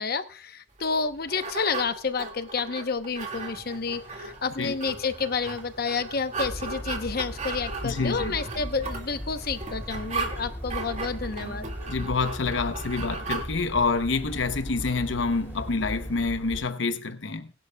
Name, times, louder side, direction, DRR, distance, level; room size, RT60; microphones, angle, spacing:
voice 1, 0.0-11.7, left 5 dB, 55° left, 0.9 m, -30 dB
sound 1, 0.8-13.4, right 4 dB, 40° right, 2.1 m, -37 dB
sound 2, 3.2-16.3, equal, 10° right, 4.5 m, -52 dB
sound 3, 6.4-16.6, equal, 10° left, 2.6 m, -37 dB
voice 2, 7.8-8.4 11.9-17.5, left 4 dB, 80° left, 0.9 m, -27 dB
21.5 x 11.0 x 2.3 m
head